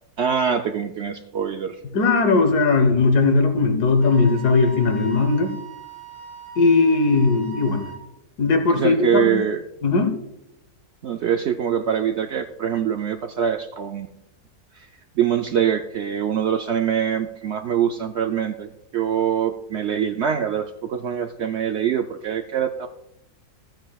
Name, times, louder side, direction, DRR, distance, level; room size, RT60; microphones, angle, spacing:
voice 1, 0.2-1.8 8.7-9.6 11.0-14.1 14.8-14.9 15.2-22.9, right 8 dB, 70° right, 6 dB, 0.6 m, -24 dB
voice 2, 1.9-5.5 6.6-7.8 8.4-9.4 9.8-10.1, left 3 dB, 85° left, 6 dB, 1.7 m, -18 dB
Wind instrument woodwind instrument, 4.0-8.0, right 4 dB, 30° left, 3.7 m, -40 dB
14.0 x 8.9 x 2.3 m, 0.81 s
omnidirectional pair, 1.7 m